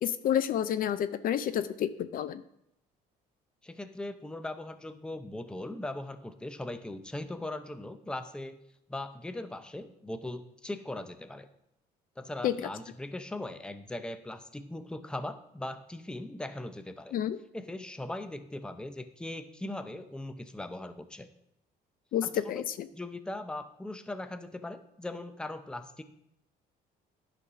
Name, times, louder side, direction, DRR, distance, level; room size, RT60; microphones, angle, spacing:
voice 1, 0.0-2.4 12.4-12.5 17.1-17.4 22.1-22.6, left 10 dB, 55° left, 13 dB, 0.5 m, -29 dB
voice 2, 3.6-8.6 8.9-11.5 12.2-17.2 17.5-21.3 22.2-22.6 22.9-26.0, left 1 dB, 5° left, 9 dB, 0.6 m, -39 dB
10.5 x 4.1 x 5.6 m, 0.78 s
cardioid pair, 110°, 17 cm